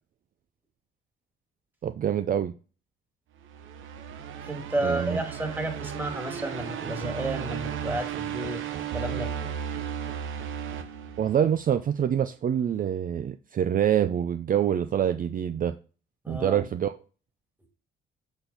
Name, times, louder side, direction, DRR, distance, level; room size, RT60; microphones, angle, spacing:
voice 1, 1.8-2.5 4.8-5.2 11.2-15.7 16.3-17.0, right 9 dB, 45° right, 0.5 m, -26 dB
sound 1, 3.4-11.7, right 8 dB, 80° right, 0.9 m, -35 dB
voice 2, 4.4-8.6 8.9-9.3 16.2-16.6, right 1 dB, 10° right, 1.9 m, -32 dB
8.0 x 4.3 x 4.0 m
cardioid pair, 90°, 20 cm